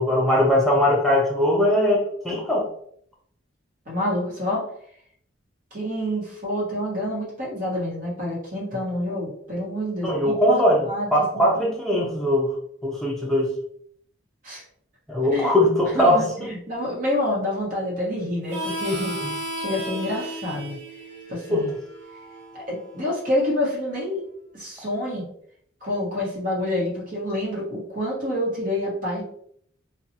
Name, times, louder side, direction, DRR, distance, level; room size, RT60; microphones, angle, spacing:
voice 1, 0.0-2.7 10.0-12.5 12.8-13.5 15.1-16.5 21.5-21.6, left 1 dB, ahead, -3 dB, 0.5 m, -20 dB
voice 2, 3.9-4.7 5.7-11.6 14.4-14.6 15.2-15.6 15.9-20.8 21.3-21.7 22.5-24.2 24.5-25.3 25.8-29.2, left 1 dB, 45° right, -5 dB, 1.2 m, -28 dB
Harmonica, 18.5-23.8, right 1 dB, 75° right, 1.0 m, -35 dB
2.7 x 2.3 x 2.7 m, 0.64 s
head